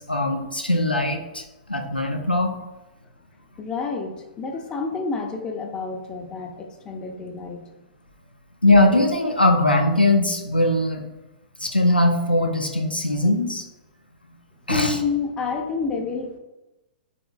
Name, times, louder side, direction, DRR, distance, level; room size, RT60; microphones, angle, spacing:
voice 1, 0.0-1.4 1.7-2.5 8.6-11.0 11.6-13.6 14.7-14.9, left 1 dB, 90° left, 2 dB, 0.5 m, -20 dB
voice 2, 3.6-7.7 14.7-16.4, left 4 dB, 15° left, 3 dB, 0.4 m, -29 dB
3.6 x 3.4 x 2.3 m, 1.0 s
figure-of-eight pair, 110°, 5 cm